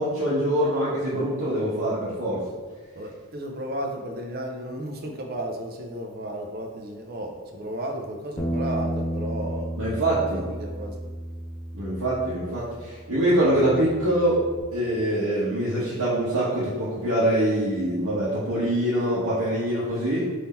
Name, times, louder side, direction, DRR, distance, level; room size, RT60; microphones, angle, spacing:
voice 1, 0.0-2.4 9.8-10.4 11.7-14.4 14.7-20.3, right 1 dB, 75° right, -9 dB, 0.9 m, -24 dB
voice 2, 2.9-9.8 10.0-11.1, right 1 dB, 45° right, 2 dB, 0.5 m, -34 dB
Bass guitar, 8.4-14.6, equal, 15° left, 0.4 m, -33 dB
3.7 x 2.7 x 4.2 m, 1.4 s
head